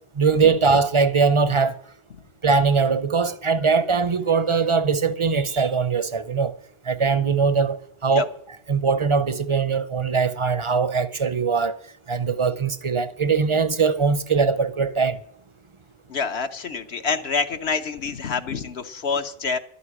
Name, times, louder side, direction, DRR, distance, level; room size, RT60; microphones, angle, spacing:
voice 1, 0.2-1.8 2.4-6.5 6.9-8.3 8.7-11.8 12.1-15.2, right 5 dB, 30° right, 0.6 m, -21 dB
voice 2, 16.1-19.6, left 5 dB, 65° left, 1.1 m, -27 dB
12.0 x 8.4 x 10.0 m
omnidirectional pair, 1.2 m